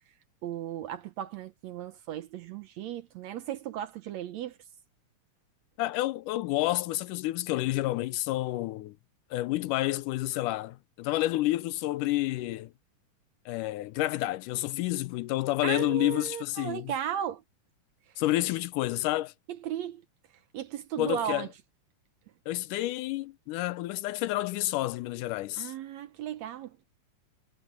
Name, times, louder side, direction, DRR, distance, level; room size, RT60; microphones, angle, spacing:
voice 1, 0.4-4.5 15.6-17.4 19.6-20.0 20.5-21.5 25.6-26.7, right 10 dB, 70° right, 1.8 m, -35 dB
voice 2, 5.8-9.0 9.3-12.7 13.5-16.9 18.2-19.3 21.0-21.5 22.5-25.7, left 16 dB, 80° left, 2.2 m, -29 dB
omnidirectional pair, 3.8 m